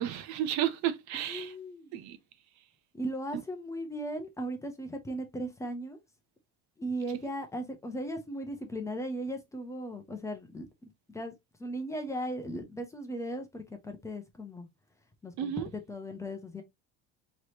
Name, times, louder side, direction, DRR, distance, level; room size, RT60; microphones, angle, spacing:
voice 1, 0.0-1.5 1.9-2.2 15.4-15.7, right 11 dB, 65° right, 0.8 m, -32 dB
voice 2, 1.3-1.9 2.9-6.0 6.8-10.7 11.1-11.3 11.6-14.7 15.2-16.6, right 1 dB, 10° left, 0.7 m, -37 dB
4.7 x 3.2 x 2.8 m
cardioid pair, 155°, 31 cm